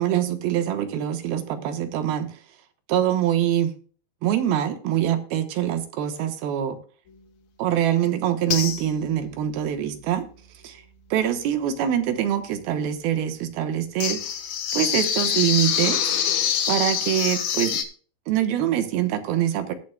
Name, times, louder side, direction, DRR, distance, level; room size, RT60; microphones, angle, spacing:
voice 1, 0.0-2.3 2.9-3.7 4.2-6.8 7.6-10.2 10.6-10.8 11.1-14.3 14.7-16.1 16.7-17.8 18.3-19.7, right 11 dB, 75° right, 8 dB, 2.8 m, -24 dB
sound 1, 8.0-8.1 8.5-9.2 14.0-17.8, left 8 dB, 70° left, 3.0 m, -25 dB
20.5 x 7.6 x 2.2 m, 0.41 s
omnidirectional pair, 4.7 m